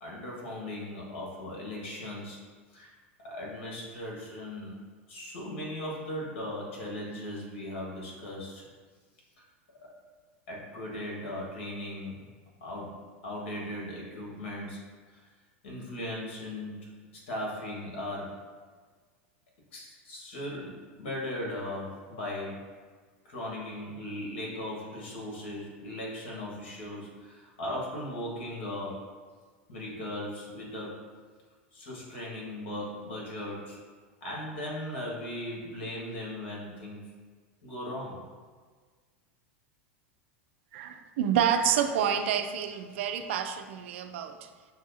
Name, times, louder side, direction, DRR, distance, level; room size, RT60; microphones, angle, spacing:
voice 1, 0.0-2.4 2.7-2.9 3.2-4.7 5.1-8.6 9.8-9.9 10.5-12.2 12.6-13.0 13.2-14.8 15.1-15.2 15.6-16.9 17.3-18.4 19.7-22.7 23.2-29.0 29.7-31.0 31.7-33.8 34.2-37.1 37.6-38.3, left 1 dB, 70° left, -4 dB, 1.5 m, -38 dB
voice 2, 40.7-44.5, right 8 dB, 70° right, 7 dB, 0.4 m, -28 dB
6.2 x 2.4 x 2.7 m, 1.5 s
hypercardioid pair, 100°, 7 cm